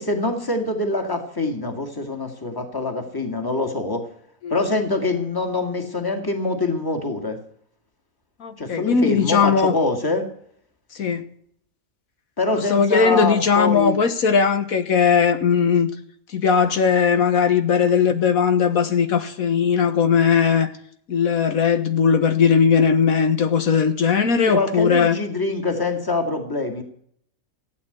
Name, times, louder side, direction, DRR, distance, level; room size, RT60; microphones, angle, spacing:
voice 1, 0.0-4.0 4.5-7.4 8.6-10.3 12.4-14.0 24.4-26.8, left 2 dB, 15° left, 2.1 m, -24 dB
voice 2, 8.4-9.7 10.9-11.2 12.5-15.9 16.3-20.7 21.1-25.2, left 6 dB, 75° left, 1.8 m, -18 dB
15.0 x 9.1 x 8.0 m
omnidirectional pair, 1.5 m